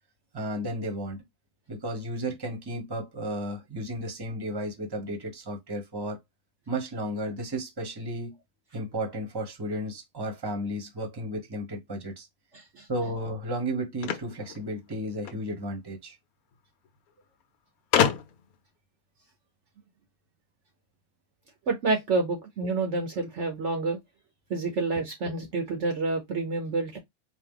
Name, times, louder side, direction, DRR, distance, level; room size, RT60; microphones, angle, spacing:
voice 1, 0.3-1.2 1.7-6.2 6.7-8.4 8.7-12.3 12.9-16.1, right 1 dB, 20° right, 1.0 m, -33 dB
voice 2, 12.5-12.9 21.7-24.0 24.5-27.0, right 3 dB, 60° right, 1.0 m, -28 dB
sound 1, 14.0-15.4 16.5-16.6 16.9-17.0 17.9-18.6, left 9 dB, 80° left, 1.1 m, -27 dB
4.0 x 2.4 x 3.7 m
omnidirectional pair, 1.5 m